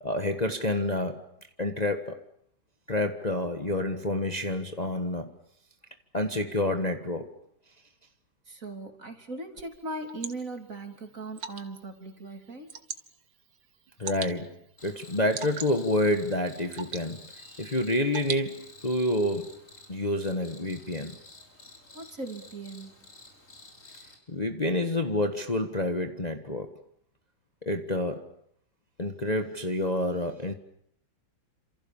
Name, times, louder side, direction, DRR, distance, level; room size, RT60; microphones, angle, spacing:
voice 1, 0.0-1.2 1.6-2.2 2.9-5.3 6.1-7.3 14.0-14.6 14.8-17.2 17.6-19.5 19.9-21.1 24.3-26.7 27.6-28.3 29.0-30.5, left 1 dB, 25° left, 6 dB, 1.4 m, -28 dB
voice 2, 8.5-12.7 21.9-23.0, right 2 dB, 45° right, 5 dB, 3.7 m, -39 dB
Water / Drip, 9.6-19.0, right 6 dB, 80° right, 2.3 m, -43 dB
Cricket, 14.8-24.2, left 2 dB, 40° left, 5.3 m, -51 dB
28.5 x 27.5 x 7.2 m, 0.71 s
omnidirectional pair, 2.1 m